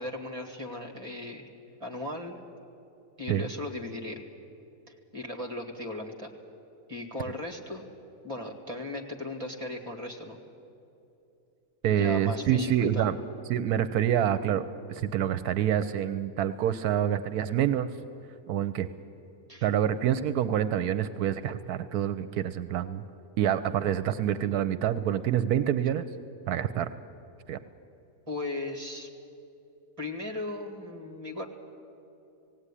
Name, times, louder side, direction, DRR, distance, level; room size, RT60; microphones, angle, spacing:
voice 1, 0.0-1.5 1.8-2.4 3.2-4.2 4.9-6.3 6.9-7.8 8.2-10.4 11.9-13.1 19.5-19.7 28.3-29.1 30.0-31.5, left 2 dB, 20° right, 3 dB, 2.1 m, -37 dB
voice 2, 11.8-13.2 13.5-17.9 18.5-18.9 19.6-23.0 23.4-26.0 26.5-26.9 27.5-27.6, right 10 dB, 80° right, 13 dB, 1.2 m, -27 dB
18.5 x 17.0 x 9.9 m, 2.8 s
omnidirectional pair, 1.6 m